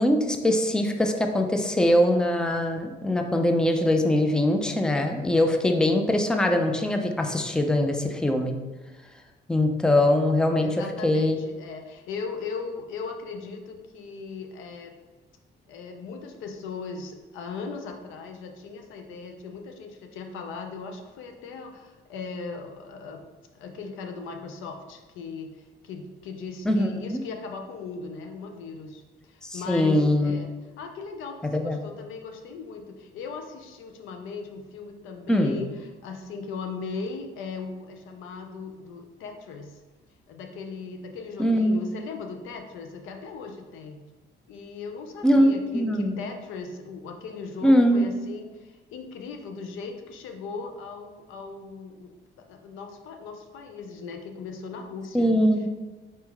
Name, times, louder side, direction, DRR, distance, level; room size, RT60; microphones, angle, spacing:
voice 1, 0.0-8.5 9.5-10.7 11.0-11.4 26.7-27.2 29.4-30.4 31.5-31.8 35.3-35.5 41.4-41.9 45.2-46.1 47.6-48.1 55.1-55.7, left 1 dB, 5° left, 4 dB, 0.4 m, -22 dB
voice 2, 10.6-15.0 15.7-23.3 23.5-39.8 40.3-44.1 44.5-52.1 52.4-55.4, left 4 dB, 90° left, 5 dB, 0.5 m, -38 dB
4.4 x 2.9 x 3.5 m, 1.2 s
cardioid pair, 90°, 20 cm